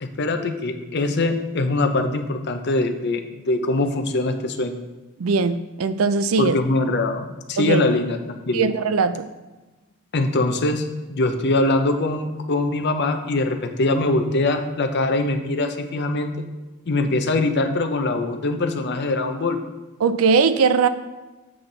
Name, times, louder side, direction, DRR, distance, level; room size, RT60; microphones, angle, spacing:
voice 1, 0.0-4.8 6.4-8.6 10.1-16.3 16.9-19.6, left 2 dB, 50° left, 7 dB, 0.6 m, -23 dB
voice 2, 5.2-6.6 7.6-7.8 8.5-9.3 20.0-20.9, right 5 dB, 75° right, 12 dB, 0.4 m, -20 dB
7.7 x 5.7 x 3.9 m, 1.2 s
head